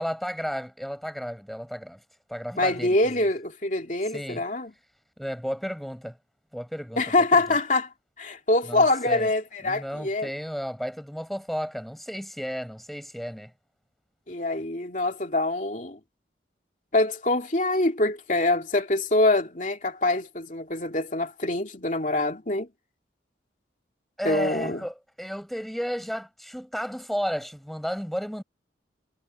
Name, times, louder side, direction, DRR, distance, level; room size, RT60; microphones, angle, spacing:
voice 1, 0.0-2.0 2.3-3.3 4.1-4.4 5.2-6.2 6.5-7.0 7.3-7.4 8.6-9.3 9.6-13.5 24.2-28.4, equal, ahead, 5.3 m, -33 dB
voice 2, 2.6-4.7 7.0-7.9 8.2-10.3 14.3-16.0 16.9-22.7 24.2-24.9, left 2 dB, 45° left, 2.8 m, -25 dB
head